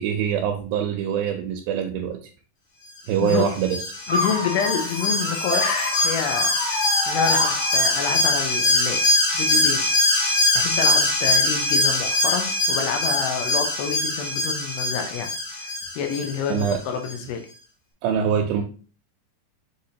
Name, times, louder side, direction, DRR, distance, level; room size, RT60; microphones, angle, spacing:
voice 1, 0.0-2.2 3.1-3.7 16.5-16.8 18.0-18.6, right 8 dB, 80° right, 3 dB, 2.3 m, -24 dB
voice 2, 3.2-3.5 4.1-9.0 9.3-10.0 10.5-15.3 15.6-17.4, left 7 dB, 85° left, 5 dB, 2.6 m, -28 dB
Alarm, 3.3-16.8 17.1-17.2, left 2 dB, 60° left, 1.6 m, -23 dB
sound 1, 4.1-8.2, left 3 dB, 35° left, 0.6 m, -28 dB
Chime, 4.6-8.9, right 3 dB, 65° right, 0.8 m, -43 dB
6.4 x 2.8 x 2.8 m, 0.39 s
omnidirectional pair, 4.3 m